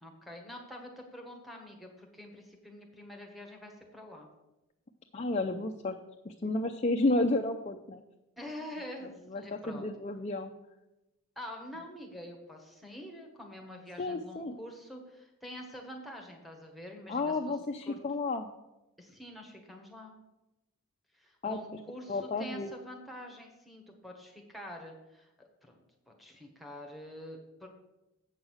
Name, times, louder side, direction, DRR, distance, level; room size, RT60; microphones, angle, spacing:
voice 1, 0.0-4.3 8.4-9.9 11.4-17.5 17.9-18.0 19.0-20.1 21.1-25.7 26.1-27.7, left 1 dB, ahead, 0 dB, 1.3 m, -46 dB
voice 2, 5.1-6.0 6.2-8.0 9.3-10.5 14.0-14.6 17.1-18.5 21.4-21.6 22.1-22.7, left 2 dB, 30° left, 3 dB, 0.5 m, -31 dB
8.1 x 6.3 x 6.3 m, 0.96 s
head